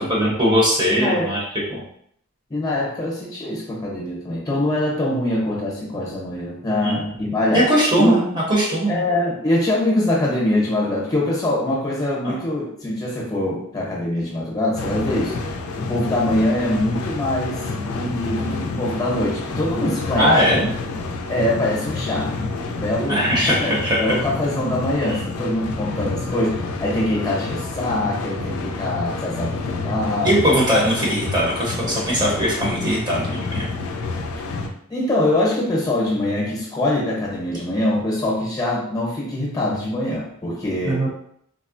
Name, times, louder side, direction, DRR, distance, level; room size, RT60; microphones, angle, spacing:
voice 1, 0.0-1.4 1.7-1.8 6.8-7.0 7.5-9.0 20.2-20.7 23.1-24.1 25.1-25.2 30.2-33.7 40.9-41.1, equal, 20° right, -4 dB, 0.7 m, -20 dB
voice 2, 0.9-1.3 2.5-8.2 8.9-15.4 15.7-17.7 17.9-20.6 21.3-22.3 22.6-23.7 24.0-30.5 34.4-34.5 34.9-41.0, left 1 dB, 15° left, -4 dB, 0.8 m, -23 dB
sound 1, 14.8-34.7, left 3 dB, 80° left, 0.4 m, -29 dB
3.5 x 2.0 x 2.5 m, 0.68 s
head